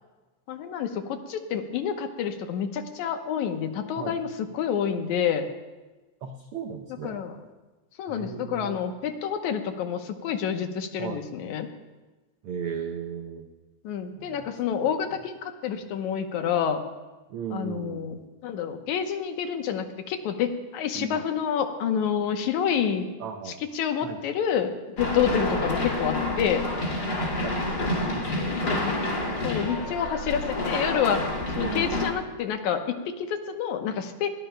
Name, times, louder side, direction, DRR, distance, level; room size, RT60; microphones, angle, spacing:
voice 1, 0.5-5.5 7.0-7.3 8.0-11.7 13.8-16.8 17.5-18.2 18.4-23.1 23.8-26.7 28.6-29.2 29.4-31.2 31.5-34.3, left 8 dB, 80° left, 6 dB, 2.3 m, -28 dB
voice 2, 6.2-7.2 8.1-8.8 11.0-11.2 12.4-13.5 14.2-15.2 17.3-18.1 20.9-21.2 23.2-23.6 24.0-24.3 25.3-25.8 27.4-27.6 27.9-28.6 29.3-29.8 31.6-32.1, right 7 dB, 85° right, 5 dB, 1.2 m, -37 dB
sound 1, 25.0-32.1, left 2 dB, 35° left, 2.8 m, -28 dB
21.0 x 18.0 x 2.2 m, 1.2 s
omnidirectional pair, 3.4 m